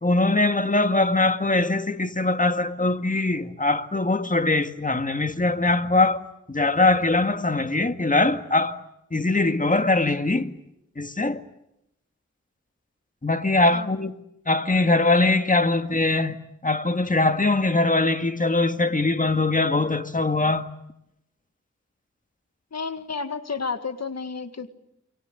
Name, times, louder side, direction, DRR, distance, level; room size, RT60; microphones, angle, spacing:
voice 1, 0.0-6.2 6.5-8.8 9.1-10.5 11.0-11.4 13.2-14.1 14.5-20.7, left 2 dB, 25° left, 1.9 m, -22 dB
voice 2, 22.7-24.7, left 4 dB, 60° left, 1.9 m, -31 dB
28.5 x 23.5 x 8.1 m
wide cardioid pair, 60°, 29 cm